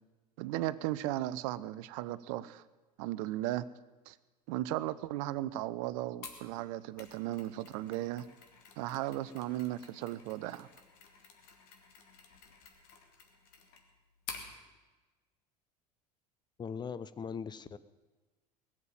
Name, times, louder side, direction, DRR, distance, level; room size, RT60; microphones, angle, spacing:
voice 1, 0.4-2.6 3.0-3.6 4.1-4.2 4.5-8.3 8.8-10.7, right 15 dB, 55° right, 16 dB, 0.6 m, -36 dB
Mechanisms, 6.2-14.5, left 5 dB, 50° left, 2.5 m, -51 dB
voice 2, 16.6-17.8, left 6 dB, 20° left, 15 dB, 0.6 m, -40 dB
19.0 x 7.5 x 9.0 m, 1.2 s
figure-of-eight pair, 75°, 21 cm